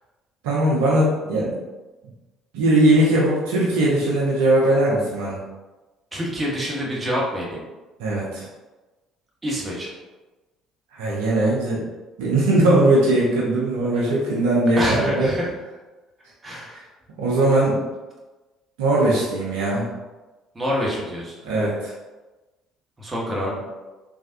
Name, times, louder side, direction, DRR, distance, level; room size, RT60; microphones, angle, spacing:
voice 1, 0.4-1.6 2.5-5.4 8.0-8.4 10.9-11.8 12.2-15.3 17.2-17.7 18.8-19.8 21.4-21.9, right 1 dB, 65° right, -6 dB, 0.6 m, -19 dB
voice 2, 6.1-7.6 9.4-9.9 14.8-15.5 16.4-16.8 20.5-21.4 23.0-23.6, equal, 20° right, -4 dB, 1.0 m, -26 dB
3.3 x 2.4 x 2.5 m, 1.2 s
figure-of-eight pair, 50°, 0 cm